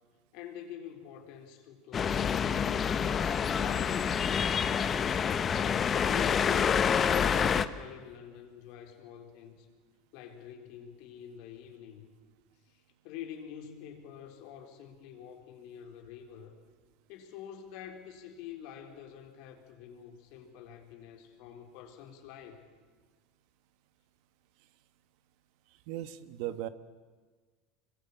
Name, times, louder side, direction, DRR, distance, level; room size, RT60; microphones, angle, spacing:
voice 1, 0.3-4.2 4.7-5.4 6.0-9.7 10.1-12.1 12.7-16.5 17.1-22.6, left 9 dB, 65° left, 4 dB, 4.2 m, -47 dB
sound 1, 1.9-7.7, left 7 dB, 30° left, 1.1 m, -27 dB
voice 2, 25.9-26.7, right 13 dB, 65° right, 13 dB, 1.4 m, -37 dB
25.5 x 22.0 x 8.7 m, 1.4 s
supercardioid pair, 105°, 0 cm